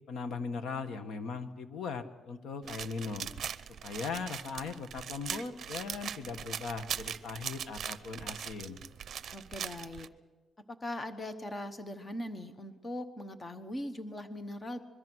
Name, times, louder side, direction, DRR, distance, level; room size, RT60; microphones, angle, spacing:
voice 1, 0.1-3.3 3.8-8.8, left 4 dB, 70° left, 9 dB, 1.5 m, -39 dB
sound 1, 2.7-10.1, right 8 dB, 50° right, 0.7 m, -40 dB
voice 2, 9.3-10.1 10.7-14.8, left 1 dB, 20° left, 9 dB, 1.1 m, -40 dB
25.0 x 22.5 x 6.3 m, 1.2 s
cardioid pair, 170°, 0 cm